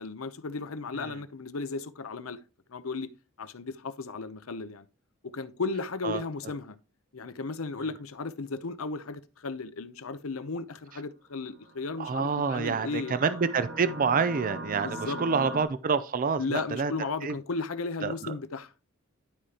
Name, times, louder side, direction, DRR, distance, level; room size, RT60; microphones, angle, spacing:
voice 1, 0.0-2.4 2.7-3.1 3.4-4.9 5.2-6.8 7.1-13.4 14.8-15.6 16.4-18.7, left 4 dB, 80° left, 0.7 m, -35 dB
sound 1, 11.6-15.6, right 1 dB, 75° right, 1.3 m, -40 dB
voice 2, 12.0-16.9 17.2-17.3 18.0-18.3, right 5 dB, 40° right, 0.5 m, -28 dB
11.5 x 4.9 x 2.9 m
head